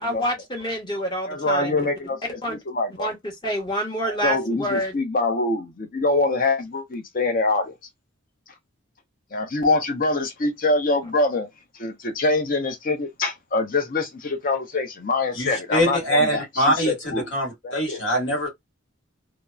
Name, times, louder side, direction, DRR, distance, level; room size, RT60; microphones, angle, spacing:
voice 1, 0.0-1.8 2.4-2.6 3.0-3.1 3.4-4.9, equal, 20° left, 0.9 m, -27 dB
voice 2, 1.2-3.1 4.0-7.7 9.3-11.5 11.8-17.3 17.6-18.0, left 2 dB, 45° left, 0.6 m, -24 dB
voice 3, 15.3-18.5, equal, 70° left, 1.4 m, -23 dB
2.8 x 2.0 x 2.3 m
head